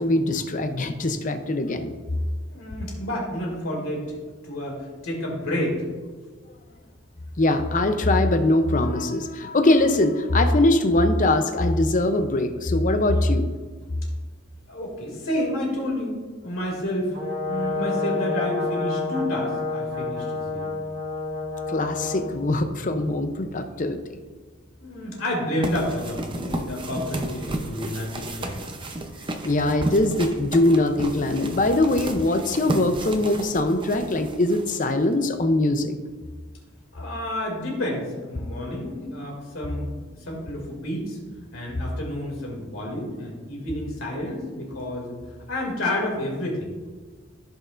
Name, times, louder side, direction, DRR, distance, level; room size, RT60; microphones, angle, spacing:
voice 1, 0.0-1.9 7.4-13.5 21.7-24.0 29.4-35.9, left 2 dB, 35° left, 7 dB, 0.6 m, -22 dB
voice 2, 2.5-4.1 4.4-5.8 14.7-17.2 17.5-20.7 24.8-28.7 36.9-39.9 40.2-41.2 41.5-45.1 45.5-46.7, left 1 dB, 70° left, -2 dB, 2.4 m, -30 dB
Brass instrument, 17.1-22.3, left 3 dB, 85° right, 2.2 m, -29 dB
sound 1, 25.6-35.1, right 1 dB, 25° right, 0.6 m, -33 dB
15.0 x 5.5 x 2.5 m, 1.4 s
head